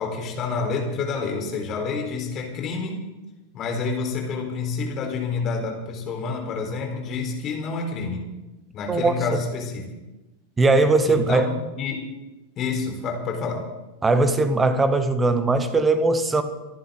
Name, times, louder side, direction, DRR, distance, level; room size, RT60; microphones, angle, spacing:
voice 1, 0.0-3.0 3.5-8.2 8.7-9.9 11.0-12.0 12.6-13.6, left 4 dB, 30° left, 1 dB, 4.3 m, -28 dB
voice 2, 10.6-11.4 14.0-16.4, right 3 dB, 15° right, 10 dB, 1.5 m, -19 dB
26.5 x 11.5 x 4.0 m, 1.1 s
figure-of-eight pair, 90°, 0 cm